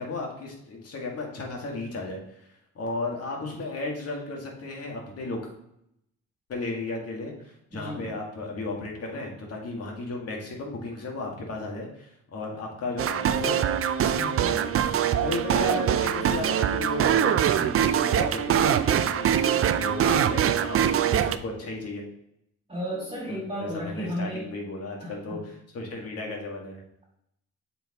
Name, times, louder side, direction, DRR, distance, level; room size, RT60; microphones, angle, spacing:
voice 1, 0.0-2.2 2.8-5.4 6.5-13.6 14.0-14.7 15.2-22.0 23.3-25.4 25.7-26.8, left 2 dB, 55° left, -1 dB, 2.0 m, -34 dB
voice 2, 7.7-8.0 14.4-14.5 22.7-24.5 25.0-25.4, equal, 20° right, -5 dB, 2.5 m, -33 dB
sound 1, 13.0-21.4, right 9 dB, 50° right, 0.5 m, -23 dB
7.6 x 4.7 x 3.0 m, 0.77 s
cardioid pair, 90°, 30 cm